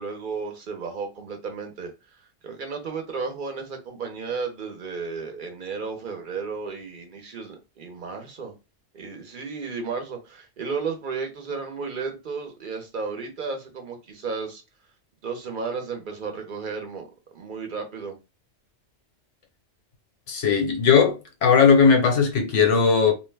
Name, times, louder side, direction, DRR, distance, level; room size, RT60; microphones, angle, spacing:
voice 1, 0.0-1.9 2.4-8.5 8.9-14.6 15.2-17.1 17.3-18.2, right 5 dB, 50° right, 0.8 m, -33 dB
voice 2, 20.3-21.1 21.4-23.1, left 6 dB, 85° left, 1.1 m, -18 dB
2.5 x 2.2 x 3.3 m
omnidirectional pair, 1.2 m